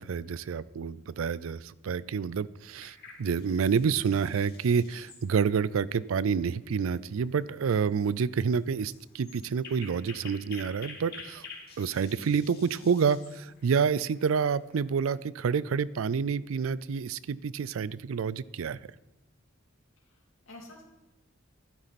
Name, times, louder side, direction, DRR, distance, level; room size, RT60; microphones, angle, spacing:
voice 1, 0.0-11.5 11.8-18.8, right 6 dB, 90° right, 19 dB, 0.4 m, -28 dB
sound 1, 2.8-15.2, left 4 dB, 50° left, 2.3 m, -50 dB
voice 2, 20.0-20.8, left 2 dB, 75° left, -1 dB, 3.0 m, -50 dB
12.0 x 11.5 x 4.2 m, 1.0 s
head